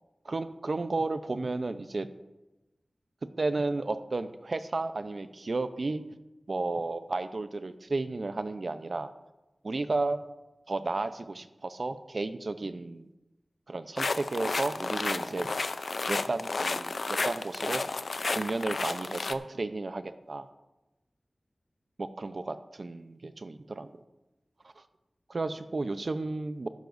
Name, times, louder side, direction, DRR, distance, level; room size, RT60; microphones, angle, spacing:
voice 1, 0.2-2.1 3.4-6.0 6.5-9.1 9.6-10.2 10.7-13.1 13.7-15.5 16.1-17.8 18.3-20.5 22.0-23.9 24.8-24.9 25.3-26.7, right 3 dB, 60° right, 10 dB, 0.7 m, -33 dB
sound 1, 14.0-19.3, left 3 dB, 70° left, 0.5 m, -32 dB
14.5 x 12.0 x 2.6 m, 1.0 s
wide cardioid pair, 55°, 0 cm